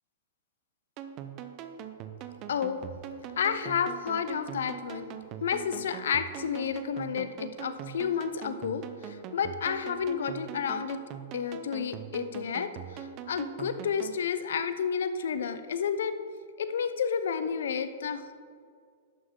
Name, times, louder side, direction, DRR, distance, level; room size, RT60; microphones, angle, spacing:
sound 1, 1.0-14.2, right 9 dB, 40° right, 0.7 m, -42 dB
voice 1, 2.5-2.8 3.4-5.1 5.4-11.0 11.3-16.1 16.6-18.3, left 7 dB, 80° left, 11 dB, 0.6 m, -31 dB
11.0 x 6.4 x 3.8 m, 2.1 s
hypercardioid pair, 130°, 0 cm